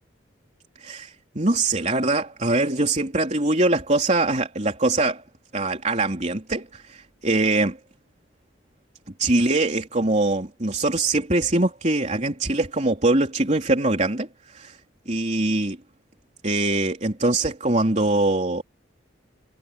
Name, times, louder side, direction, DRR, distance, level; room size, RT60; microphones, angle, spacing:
voice 1, 0.8-5.2 5.5-7.8 9.2-14.3 14.5-14.8 15.1-15.8 16.4-18.6, right 2 dB, 35° right, 3.6 m, -23 dB
head